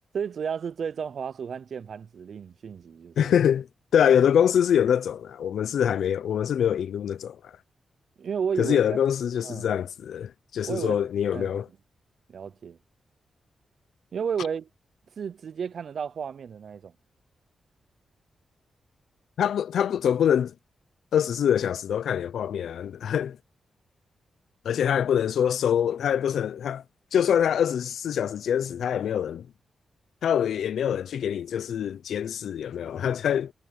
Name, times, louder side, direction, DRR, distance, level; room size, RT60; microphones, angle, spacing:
voice 1, 0.1-3.3 8.2-9.0 9.4-9.7 10.6-11.0 11.3-11.6 12.3-12.8 14.1-14.7 15.2-16.9, right 7 dB, 65° right, 0.5 m, -32 dB
voice 2, 3.2-3.7 3.9-7.5 8.6-11.7 19.4-20.5 21.1-23.4 24.6-26.8 27.1-29.5 30.2-33.5, left 9 dB, 85° left, 0.6 m, -24 dB
cardioid pair, 95°, 0 cm